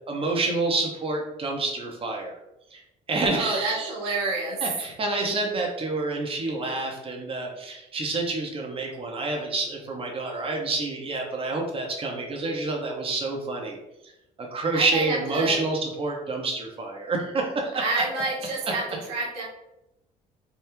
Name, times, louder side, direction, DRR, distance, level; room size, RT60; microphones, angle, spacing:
voice 1, 0.1-2.4 2.7-2.8 3.1-3.9 4.6-13.8 14.0-14.1 14.4-17.7, right 3 dB, 30° right, 1 dB, 0.8 m, -28 dB
voice 2, 3.3-4.6 14.7-15.6 17.7-19.4, right 3 dB, 85° right, -3 dB, 0.9 m, -29 dB
3.5 x 2.3 x 3.1 m, 0.88 s
hypercardioid pair, 60°, 18 cm